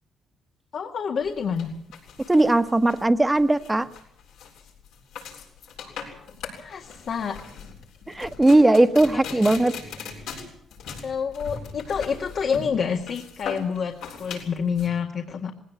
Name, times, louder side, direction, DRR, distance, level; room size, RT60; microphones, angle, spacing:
voice 1, 0.7-1.7 5.8-7.4 9.1-9.4 11.0-15.5, left 6 dB, 60° left, 3 dB, 1.9 m, -28 dB
sound 1, 1.2-14.9, left 6 dB, 90° left, 7.6 m, -39 dB
voice 2, 2.3-3.9 8.1-9.7, right 2 dB, 15° right, 10 dB, 1.4 m, -18 dB
20.0 x 18.0 x 9.2 m, 0.67 s
cardioid pair, 90°, 0 cm